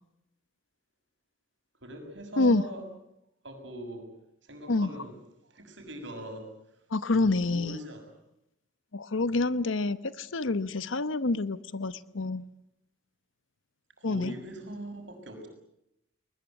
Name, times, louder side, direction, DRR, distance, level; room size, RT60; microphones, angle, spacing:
voice 1, 1.8-2.8 3.4-4.1 4.4-5.1 5.5-6.4 7.1-8.0 14.0-15.5, right 1 dB, 70° right, 4 dB, 6.7 m, -41 dB
voice 2, 6.9-7.8 8.9-12.5 14.0-14.3, left 3 dB, 85° left, 15 dB, 0.9 m, -27 dB
21.0 x 21.0 x 9.2 m, 0.82 s
head